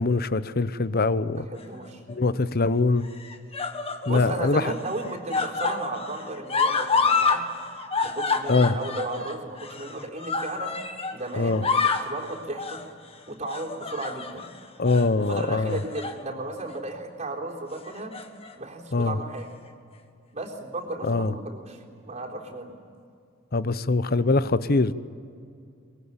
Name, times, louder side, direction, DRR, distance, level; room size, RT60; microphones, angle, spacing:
voice 1, 0.0-1.4 2.1-3.1 4.1-4.7 8.5-8.8 11.3-11.7 14.8-15.8 18.9-19.2 21.0-21.3 23.5-24.9, left 3 dB, 50° left, 14 dB, 0.9 m, -23 dB
voice 2, 1.3-2.0 4.1-7.4 8.0-10.8 11.1-12.8 13.3-14.5 15.3-18.1 18.6-19.5 20.3-22.8, right 2 dB, 35° right, 0 dB, 3.8 m, -34 dB
sound 1, 1.6-2.1 3.0-4.3 4.7-7.4 7.7-11.2 11.5-12.1 12.6-12.9 13.5-14.5 14.9-15.1 15.7-16.2 16.6-16.8 17.9-18.5 19.4-19.5, left 4 dB, 30° left, 1.6 m, -28 dB
24.0 x 22.5 x 8.9 m, 2.4 s
head